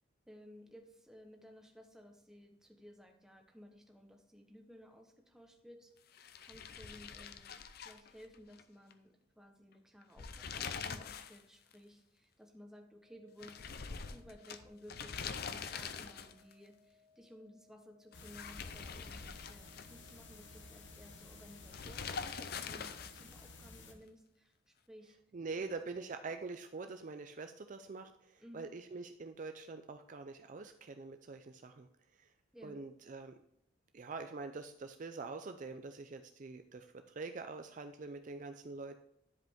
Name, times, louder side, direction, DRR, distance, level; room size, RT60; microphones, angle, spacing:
voice 1, 0.3-13.6 13.9-25.2 28.4-28.7 32.5-32.8, equal, 5° right, 3 dB, 1.0 m, -57 dB
sound 1, 6.1-8.6 8.9-9.0 10.0-11.4 11.7-11.8 13.4-16.5 18.1-20.1 21.7-23.4, left 6 dB, 55° left, 0.5 m, -44 dB
sound 2, 13.0-23.0, left 4 dB, 20° right, 1.7 m, -70 dB
sound 3, 18.1-23.9, left 3 dB, 70° left, 1.2 m, -54 dB
voice 2, 25.3-31.9 32.2-32.3 32.6-33.4 33.9-39.0, right 3 dB, 40° right, 7 dB, 0.4 m, -45 dB
10.5 x 5.0 x 3.6 m, 0.78 s
head